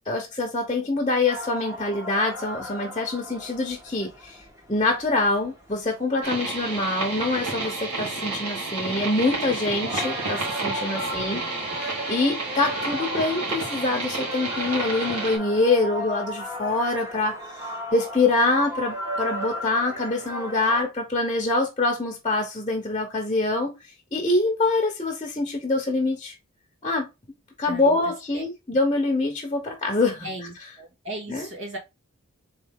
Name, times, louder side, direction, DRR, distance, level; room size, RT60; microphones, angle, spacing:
voice 1, 0.1-4.4 4.7-11.4 12.1-23.7 24.1-26.3 26.8-27.1 27.6-30.3 31.3-31.5, left 2 dB, 25° left, 0.9 m, -25 dB
sound 1, 1.3-7.9 8.4-8.8 9.2-20.8, equal, 15° right, 1.1 m, -35 dB
sound 2, 6.2-15.4, right 3 dB, 85° right, 2.1 m, -31 dB
voice 2, 11.1-11.8 27.6-28.0 28.3-28.4 30.2-31.8, right 1 dB, 60° right, 1.8 m, -37 dB
3.8 x 3.3 x 3.6 m
head